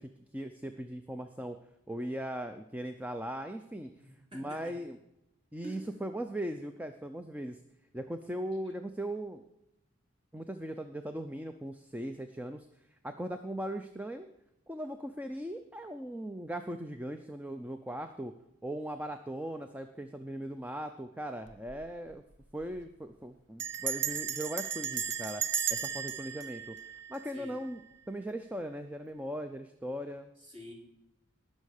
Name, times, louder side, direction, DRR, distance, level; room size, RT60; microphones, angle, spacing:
voice 1, 0.0-1.6 1.9-5.0 5.5-7.6 7.9-9.4 10.3-14.3 14.7-18.3 18.6-22.2 22.5-25.4 25.7-27.8 28.1-30.3, right 1 dB, 5° right, 7 dB, 0.4 m, -39 dB
voice 2, 4.0-4.8 5.6-5.8 8.6-8.7 27.3-27.6 30.4-30.7, right 1 dB, 25° right, -1 dB, 3.2 m, -47 dB
Bell, 21.5-21.8 22.1-22.2 22.4-22.8 23.6-27.7, right 8 dB, 55° right, 0.9 m, -35 dB
19.0 x 6.4 x 6.5 m, 0.86 s
head